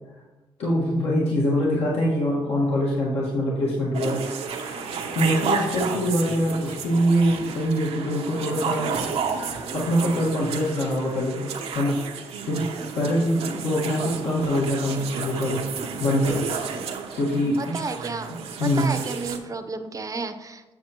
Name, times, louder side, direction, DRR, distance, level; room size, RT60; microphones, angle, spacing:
voice 1, 0.6-4.9 5.1-9.0 9.7-11.5 11.7-12.0 12.4-12.7 12.9-15.6 16.0-16.4 17.1-17.9 18.3-18.4 18.6-18.9, equal, 80° left, -6 dB, 1.5 m, -24 dB
sound 1, 3.9-19.4, right 5 dB, 75° right, 0.7 m, -32 dB
voice 2, 17.6-18.3 18.6-20.6, right 4 dB, 35° right, 8 dB, 0.6 m, -32 dB
7.6 x 6.9 x 2.9 m, 1.2 s
cardioid pair, 65°, 10 cm